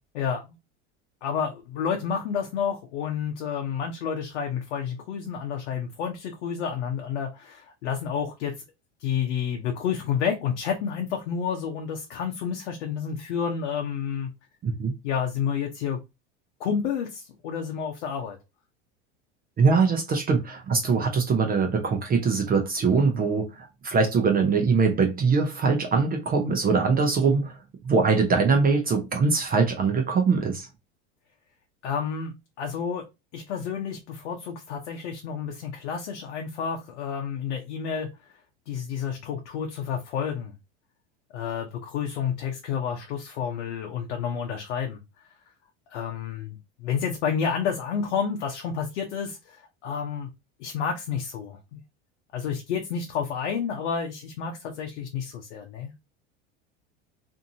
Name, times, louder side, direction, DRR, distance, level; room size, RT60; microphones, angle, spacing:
voice 1, 0.1-0.6 1.2-8.6 9.0-14.3 15.0-16.0 16.6-18.4 31.8-33.1 33.3-38.1 38.7-40.5 41.3-45.0 45.9-50.3 50.6-51.8 52.3-55.9, left 7 dB, 80° left, 0.7 m, -30 dB
voice 2, 14.6-14.9 19.6-27.6 27.8-30.7, right 4 dB, 25° right, 0.6 m, -22 dB
2.6 x 2.5 x 2.6 m
hypercardioid pair, 95°, 34 cm